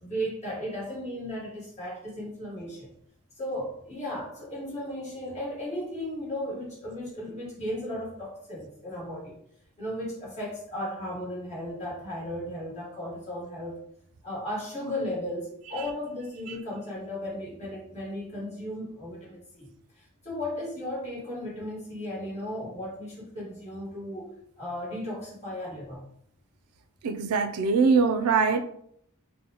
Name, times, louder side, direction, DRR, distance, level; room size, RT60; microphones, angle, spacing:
voice 1, 0.0-2.9 3.4-9.4 9.8-13.8 14.2-19.7 20.0-26.1, left 1 dB, 30° left, -5 dB, 1.3 m, -35 dB
voice 2, 27.0-28.6, right 5 dB, 75° right, 7 dB, 0.3 m, -23 dB
3.9 x 2.1 x 2.8 m, 0.69 s
head